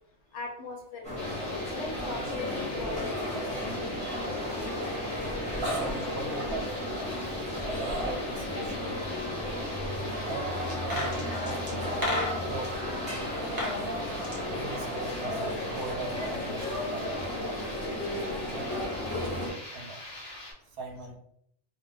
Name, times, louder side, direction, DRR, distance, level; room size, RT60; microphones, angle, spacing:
voice 1, 0.3-3.3, left 3 dB, 75° left, 3 dB, 0.9 m, -40 dB
sound 1, 1.0-19.5, left 1 dB, 5° left, 0.9 m, -33 dB
sound 2, 1.2-20.5, left 1 dB, 40° left, 0.8 m, -43 dB
voice 2, 5.6-6.7 7.0-7.4 7.6-11.9 12.5-12.9 13.1-13.5 14.5-17.6 18.5-19.4 19.7-20.0 20.8-21.2, right 3 dB, 65° right, 2 dB, 0.7 m, -41 dB
sound 3, 10.7-12.7 13.3-13.8 14.1-15.5 15.7-15.8, left 1 dB, 25° right, 0.6 m, -34 dB
2.4 x 2.1 x 3.2 m, 0.70 s
omnidirectional pair, 1.2 m